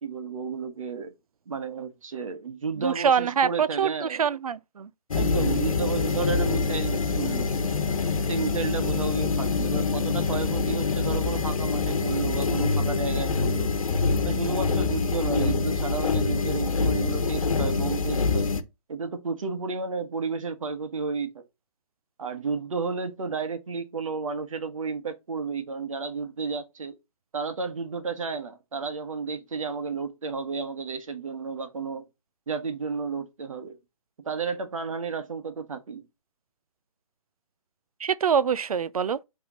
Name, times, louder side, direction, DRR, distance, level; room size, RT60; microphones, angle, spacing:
voice 1, 0.0-1.1 1.5-4.2 5.1-7.7 8.3-13.7 14.2-18.5 18.9-21.4 22.2-26.9 27.3-32.0 32.5-33.8 34.2-36.0, right 5 dB, 65° right, 1.5 m, -32 dB
voice 2, 2.8-4.9 38.0-39.2, right 7 dB, 85° right, 0.6 m, -25 dB
sound 1, 5.1-18.6, left 4 dB, 70° left, 1.1 m, -25 dB
5.8 x 3.5 x 5.4 m
hypercardioid pair, 170°, 18 cm